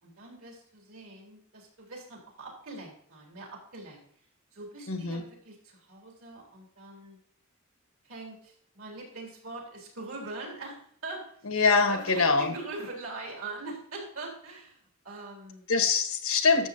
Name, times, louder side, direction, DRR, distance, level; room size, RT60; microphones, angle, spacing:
voice 1, 0.0-4.0 4.5-7.2 8.0-11.5 11.8-15.6, right 2 dB, 75° right, 0 dB, 3.8 m, -42 dB
voice 2, 4.9-5.2 11.4-12.5 15.7-16.7, left 4 dB, 85° left, 7 dB, 1.3 m, -24 dB
12.0 x 7.6 x 2.8 m, 0.63 s
head